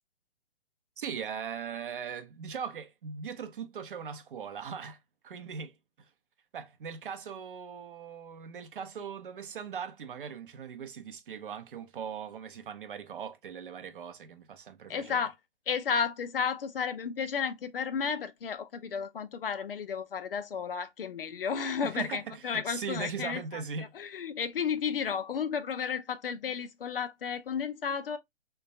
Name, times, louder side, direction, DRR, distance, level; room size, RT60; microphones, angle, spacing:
voice 1, 1.0-5.0 5.2-5.7 6.5-15.2 21.8-23.9, right 6 dB, 50° right, 0.5 m, -39 dB
voice 2, 14.9-15.3 15.7-28.2, left 6 dB, 55° left, 0.5 m, -33 dB
3.3 x 2.2 x 2.6 m
figure-of-eight pair, 130°, 34 cm